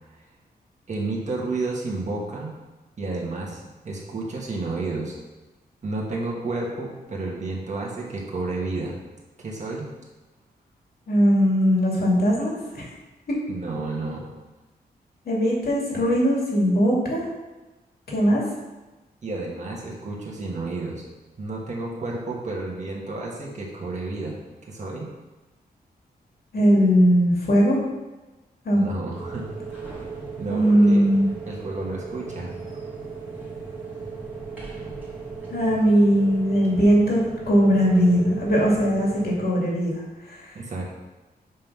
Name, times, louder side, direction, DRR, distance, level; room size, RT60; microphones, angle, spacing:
voice 1, 0.9-2.5 3.0-5.2 5.8-9.0 9.4-9.9 13.5-14.2 19.2-21.1 21.4-24.4 24.7-25.1 28.7-29.4 30.4-31.1 31.5-32.5 40.5-40.8, right 3 dB, 45° right, -3 dB, 1.9 m, -31 dB
voice 2, 11.1-12.8 15.3-17.2 18.1-18.4 26.5-27.8 28.6-28.8 30.5-31.3 35.5-40.0, equal, 70° left, -3 dB, 2.3 m, -19 dB
sound 1, 29.1-39.4, right 5 dB, 10° right, 2.2 m, -36 dB
7.5 x 3.7 x 6.1 m, 1.1 s
wide cardioid pair, 110°, 17 cm